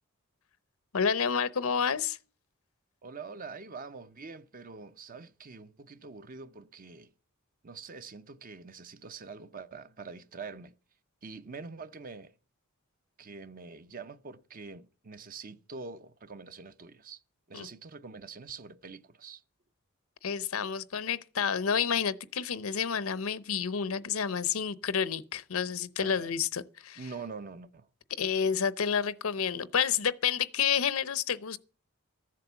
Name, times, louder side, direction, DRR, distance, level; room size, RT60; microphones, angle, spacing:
voice 1, 0.9-2.2 17.5-17.7 20.2-27.0 28.2-31.6, left 7 dB, 80° left, 0.7 m, -29 dB
voice 2, 3.0-7.1 7.6-10.7 11.2-12.4 13.2-17.2 17.5-19.4 26.0-26.3 27.0-27.9, right 4 dB, 40° right, 0.6 m, -45 dB
14.0 x 7.7 x 6.9 m
head